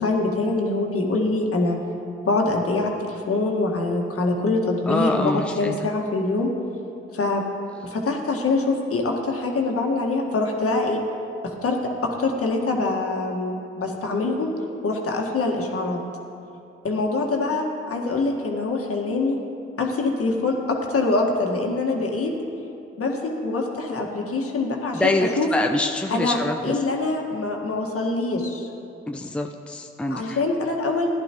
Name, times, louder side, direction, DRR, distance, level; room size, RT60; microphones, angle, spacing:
voice 1, 0.0-1.8 2.2-6.5 7.1-7.4 7.8-11.0 11.4-11.8 12.0-14.5 14.8-16.0 16.8-19.4 19.8-22.3 23.0-25.1 25.4-25.5 26.1-26.4 26.6-28.7 30.1-31.1, left 3 dB, 50° left, 1 dB, 1.8 m, -24 dB
voice 2, 4.9-5.9 24.9-26.8 29.1-30.4, left 2 dB, 5° left, 3 dB, 0.6 m, -25 dB
15.0 x 10.5 x 3.1 m, 2.7 s
hypercardioid pair, 45°, 29 cm